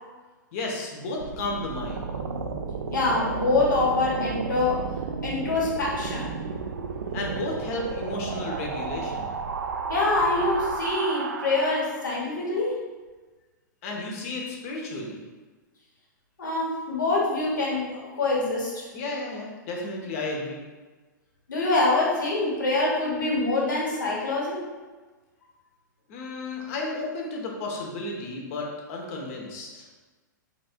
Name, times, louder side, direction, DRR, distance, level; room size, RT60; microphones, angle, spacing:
voice 1, 0.5-2.1 7.1-9.4 13.8-15.2 18.9-20.6 26.1-29.9, left 2 dB, 45° left, 0 dB, 0.9 m, -33 dB
sound 1, 1.2-12.1, right 5 dB, 75° right, 0.4 m, -32 dB
voice 2, 2.9-4.9 5.2-6.3 9.9-12.8 16.4-18.9 21.5-24.6, left 2 dB, 70° left, -4 dB, 1.3 m, -25 dB
4.1 x 3.3 x 2.4 m, 1.3 s
figure-of-eight pair, 100°, 10 cm